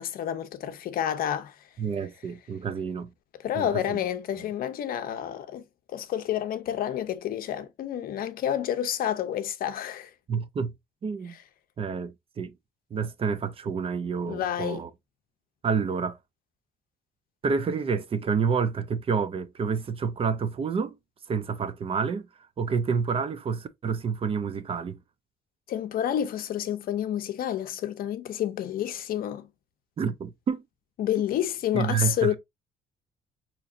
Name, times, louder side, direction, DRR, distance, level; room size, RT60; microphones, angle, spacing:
voice 1, 0.0-1.5 3.4-5.6 5.9-10.1 11.3-11.4 14.3-14.8 25.7-29.5 31.0-32.4, left 10 dB, 60° left, 0.6 m, -29 dB
voice 2, 1.8-3.1 3.5-4.0 10.3-10.7 11.0-11.4 11.8-12.5 12.9-14.9 15.6-16.2 17.4-21.0 21.3-22.2 22.6-25.0 30.0-30.6 31.7-32.4, right 5 dB, 35° right, 0.5 m, -28 dB
4.0 x 2.9 x 2.4 m
cardioid pair, 110°, 17 cm